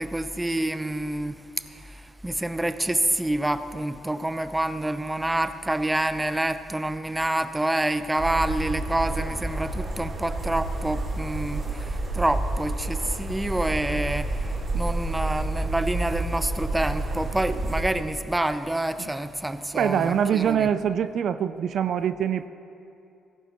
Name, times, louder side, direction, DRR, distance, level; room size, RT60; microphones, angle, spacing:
voice 1, 0.0-1.4 1.7-14.3 14.7-20.7, right 1 dB, 10° right, 11 dB, 0.5 m, -27 dB
sound 1, 8.2-17.8, right 2 dB, 50° right, 1.9 m, -29 dB
voice 2, 19.7-22.5, right 8 dB, 65° right, 12 dB, 0.4 m, -24 dB
16.5 x 14.5 x 3.0 m, 2.7 s
cardioid pair, 90°, 0 cm